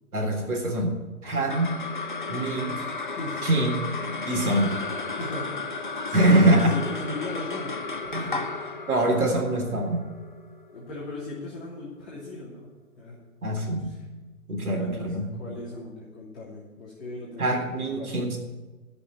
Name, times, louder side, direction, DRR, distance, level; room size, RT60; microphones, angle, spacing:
voice 1, 0.1-1.8 2.3-2.9 3.4-3.7 4.3-4.8 6.1-6.8 8.1-8.3 8.9-10.1 13.4-13.9 14.5-15.3 17.4-18.4, right 1 dB, 80° right, 2 dB, 3.6 m, -24 dB
sound 1, 1.2-11.9, left 4 dB, 35° left, 0.5 m, -34 dB
voice 2, 5.2-7.8 8.2-8.5 9.1-9.3 10.7-12.7 13.0-13.2 13.8-14.0 14.7-18.1, left 2 dB, 5° left, -12 dB, 0.8 m, -38 dB
13.5 x 5.4 x 8.2 m, 1.2 s
hypercardioid pair, 170°, 44 cm